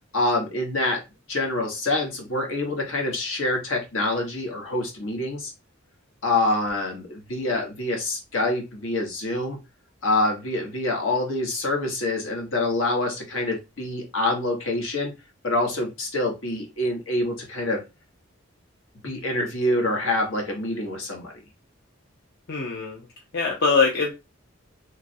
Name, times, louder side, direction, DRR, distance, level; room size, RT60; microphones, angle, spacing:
voice 1, 0.1-1.0 1.3-5.5 6.2-9.6 10.0-15.1 15.4-17.8 19.0-21.3, left 2 dB, 80° left, 1 dB, 1.1 m, -26 dB
voice 2, 22.5-23.0 23.3-24.2, left 4 dB, 55° left, -1 dB, 0.6 m, -22 dB
3.0 x 2.4 x 2.6 m, 0.25 s
head